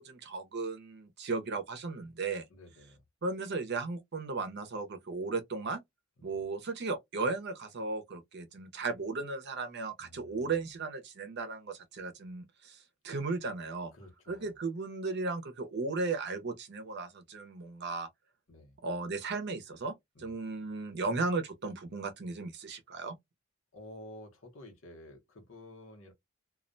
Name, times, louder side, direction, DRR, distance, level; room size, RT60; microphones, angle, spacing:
voice 1, 0.0-2.4 3.2-5.8 6.2-12.8 13.0-13.9 14.3-18.1 18.8-23.2, right 3 dB, 55° right, 0.6 m, -36 dB
voice 2, 2.5-3.0 6.3-6.4 10.0-10.6 13.9-14.5 18.5-18.8 20.1-20.4 23.7-26.1, left 1 dB, 70° left, 0.9 m, -51 dB
2.3 x 2.1 x 2.5 m
head